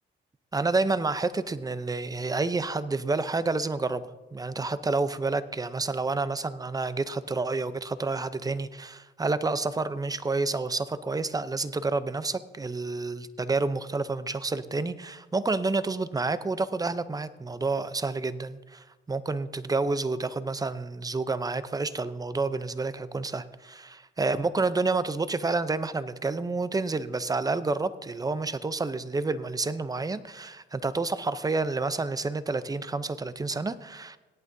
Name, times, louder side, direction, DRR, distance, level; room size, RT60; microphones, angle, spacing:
voice 1, 0.5-34.2, right 3 dB, 20° right, 13 dB, 0.6 m, -29 dB
17.5 x 11.0 x 2.7 m, 1.2 s
cardioid pair, 90°, 20 cm